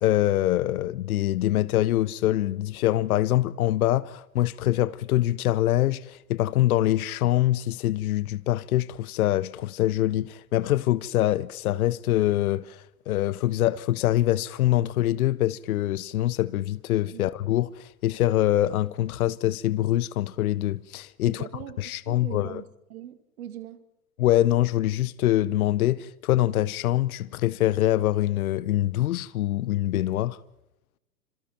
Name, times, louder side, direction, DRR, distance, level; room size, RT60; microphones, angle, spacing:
voice 1, 0.0-21.4 21.8-22.6 24.2-30.4, left 14 dB, 60° left, 0.9 m, -24 dB
voice 2, 21.2-23.8, right 11 dB, 60° right, 2.4 m, -41 dB
29.5 x 26.5 x 4.4 m
hypercardioid pair, 130°, 48 cm